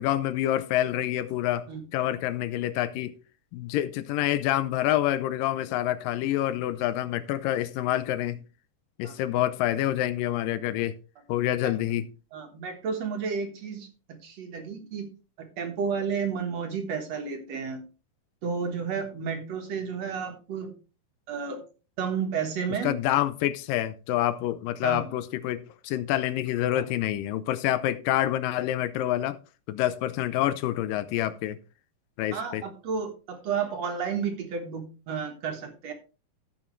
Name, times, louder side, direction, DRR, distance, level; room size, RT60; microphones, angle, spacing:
voice 1, 0.0-3.2 3.5-8.4 9.0-11.0 11.3-12.1 22.8-29.4 29.7-31.6 32.2-32.6, left 13 dB, 85° left, 2.4 m, -27 dB
voice 2, 12.3-15.1 15.4-17.8 18.4-20.7 21.3-21.6 22.0-22.9 24.8-25.1 26.7-26.9 32.3-35.9, right 6 dB, 60° right, 2.3 m, -32 dB
15.5 x 6.3 x 3.2 m
omnidirectional pair, 3.8 m